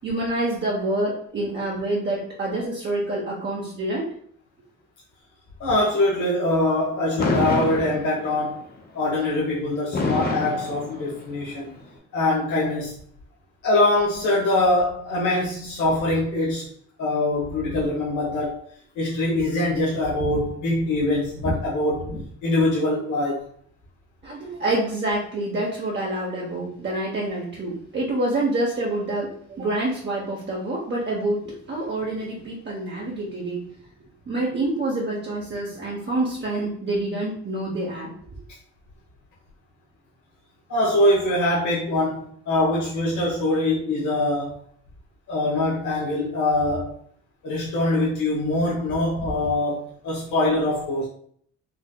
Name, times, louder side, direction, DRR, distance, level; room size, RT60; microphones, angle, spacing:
voice 1, 0.0-4.1 24.2-33.7 34.3-38.1, right 2 dB, 35° right, -4 dB, 0.9 m, -27 dB
voice 2, 5.6-8.6 8.9-11.7 12.1-13.0 13.6-16.7 17.0-18.6 18.9-23.5 40.7-44.5 45.3-46.9 47.4-51.1, left 1 dB, 70° left, -7 dB, 1.1 m, -23 dB
Fireworks, 7.2-8.5 9.9-11.5, left 3 dB, 30° left, 0.7 m, -26 dB
4.2 x 2.6 x 2.2 m, 0.62 s
cardioid pair, 90°, 30 cm